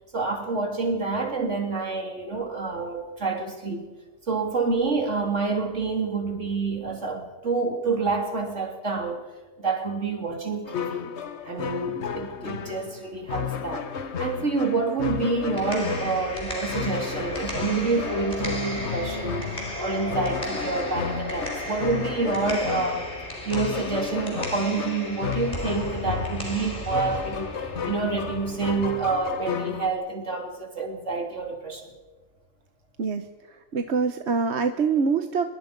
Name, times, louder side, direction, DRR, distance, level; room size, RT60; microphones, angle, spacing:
voice 1, 0.1-3.9 4.3-9.2 9.6-11.1 11.5-23.1 23.4-31.9, right 4 dB, 85° right, 2 dB, 3.7 m, -28 dB
sound 1, 10.7-29.9, left 7 dB, 70° left, 1.3 m, -33 dB
sound 2, 15.3-29.3, equal, 35° left, 5.3 m, -35 dB
voice 2, 33.5-35.5, right 5 dB, 70° right, 8 dB, 1.3 m, -25 dB
25.0 x 23.0 x 5.3 m, 1.3 s
omnidirectional pair, 1.2 m